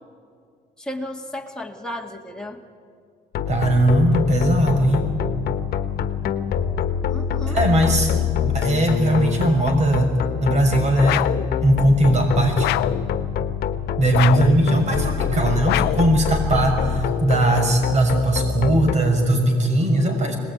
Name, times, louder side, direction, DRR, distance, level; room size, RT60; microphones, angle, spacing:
voice 1, 0.8-2.6 7.1-7.6, left 1 dB, 5° left, 0 dB, 2.4 m, -33 dB
sound 1, 3.3-19.0, left 8 dB, 65° left, 1.4 m, -25 dB
voice 2, 3.5-5.1 7.4-8.1 8.4-10.1 10.4-11.3 11.6-12.7 14.0-20.4, right 1 dB, 45° right, 3 dB, 6.2 m, -19 dB
sound 2, 11.0-11.5 12.6-13.1 14.1-14.6 15.6-16.1, left 16 dB, 80° left, 0.6 m, -24 dB
25.0 x 20.0 x 9.6 m, 2.4 s
cardioid pair, 110°, 17 cm